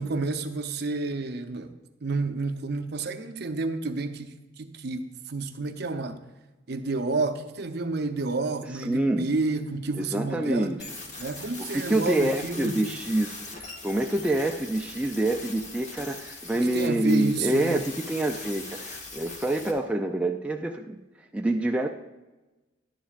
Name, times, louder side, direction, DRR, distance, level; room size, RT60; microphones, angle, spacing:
voice 1, 0.0-1.7 2.0-4.3 4.6-5.0 5.3-6.2 6.7-10.8 11.2-12.8 16.7-17.8, right 3 dB, 55° right, 0.6 m, -30 dB
voice 2, 8.8-9.3 10.0-10.9 11.6-21.0 21.3-21.9, right 1 dB, 5° right, 0.3 m, -27 dB
sound 1, 10.8-19.7, left 3 dB, 35° left, 1.1 m, -41 dB
11.0 x 10.5 x 2.4 m
head